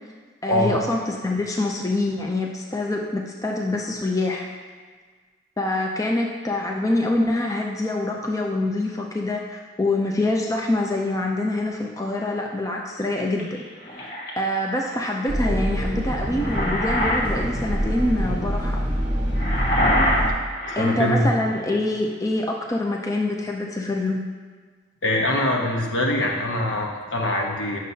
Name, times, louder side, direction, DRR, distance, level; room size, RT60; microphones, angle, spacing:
voice 1, 0.4-4.4 5.6-13.5 14.4-18.7 20.8-24.2, left 2 dB, 15° left, 0 dB, 0.5 m, -25 dB
sound 1, 13.4-14.3 16.1-17.3 17.6-17.9 19.4-21.1, equal, 45° left, 1.2 m, -25 dB
sound 2, 15.3-20.3, equal, 25° right, 1.2 m, -25 dB
voice 2, 20.7-21.2 25.0-27.8, left 1 dB, 80° left, -1 dB, 1.1 m, -23 dB
9.5 x 6.3 x 2.8 m, 1.5 s
head